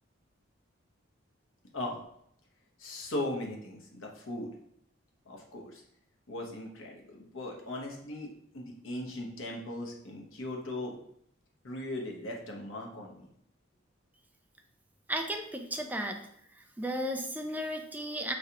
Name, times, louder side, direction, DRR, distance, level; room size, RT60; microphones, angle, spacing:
voice 1, 2.8-4.5 5.3-5.8 6.3-11.0 11.6-13.3, left 1 dB, 90° left, 0 dB, 1.0 m, -38 dB
voice 2, 15.1-16.2 16.8-18.3, equal, 10° right, 4 dB, 0.4 m, -34 dB
4.8 x 3.2 x 2.8 m, 0.70 s
head